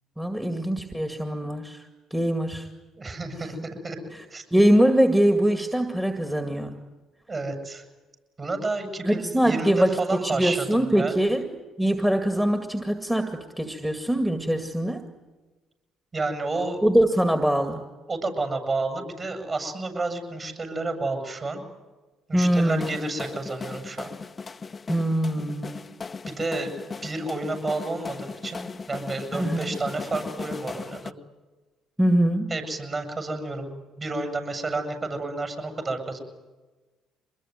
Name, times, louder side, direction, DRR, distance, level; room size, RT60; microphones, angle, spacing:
voice 1, 0.2-2.7 4.1-4.2 4.5-6.8 9.0-15.0 16.8-17.9 22.3-22.9 24.9-25.8 29.3-29.7 32.0-32.5, right 1 dB, 5° right, 6 dB, 2.1 m, -23 dB
voice 2, 3.0-4.4 7.3-7.8 8.4-11.2 16.1-16.8 18.1-21.6 22.3-24.1 26.3-26.7 27.0-31.1 32.5-36.2, right 2 dB, 40° right, 7 dB, 7.8 m, -30 dB
sound 1, 22.4-31.1, left 4 dB, 35° left, 0.9 m, -38 dB
24.5 x 21.0 x 9.5 m, 1.2 s
supercardioid pair, 65°, 0 cm